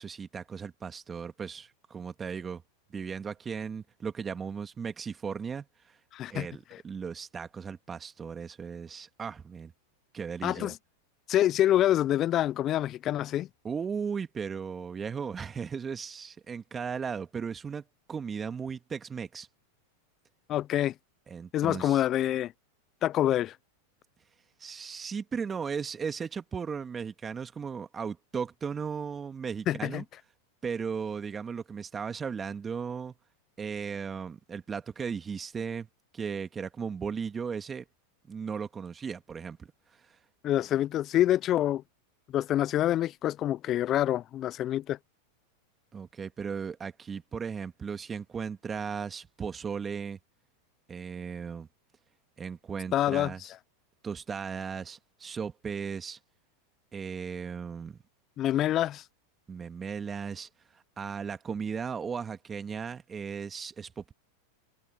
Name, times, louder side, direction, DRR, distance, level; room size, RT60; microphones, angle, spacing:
voice 1, 0.0-2.6 2.9-5.7 6.3-9.7 10.1-10.7 13.6-19.5 21.3-22.0 24.6-30.0 30.6-33.1 33.6-35.9 36.1-37.8 38.3-39.7 45.9-50.2 50.9-51.7 52.4-53.4 54.0-56.2 56.9-58.0 59.5-60.5 61.0-64.1, right 6 dB, 20° right, 1.8 m, -36 dB
voice 2, 6.1-6.8 10.4-10.8 11.3-13.5 20.5-20.9 21.5-22.5 23.0-23.6 29.7-30.0 40.4-41.8 42.3-45.0 52.9-53.5 58.4-59.1, left 12 dB, 35° left, 0.3 m, -26 dB
hypercardioid pair, 105°, 0 cm